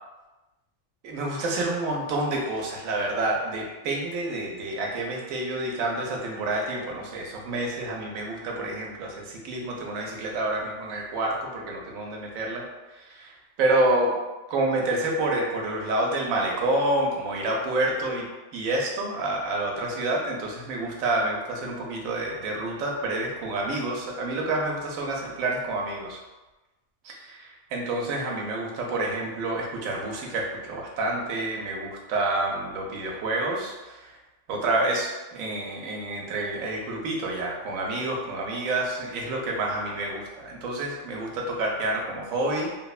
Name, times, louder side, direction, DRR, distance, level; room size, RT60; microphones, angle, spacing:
voice 1, 1.0-12.6 12.9-13.3 13.6-14.2 14.5-18.3 18.5-26.2 27.3-34.2 34.5-42.7, right 2 dB, 85° right, 0 dB, 1.0 m, -28 dB
2.9 x 2.1 x 2.3 m, 1.1 s
omnidirectional pair, 1.4 m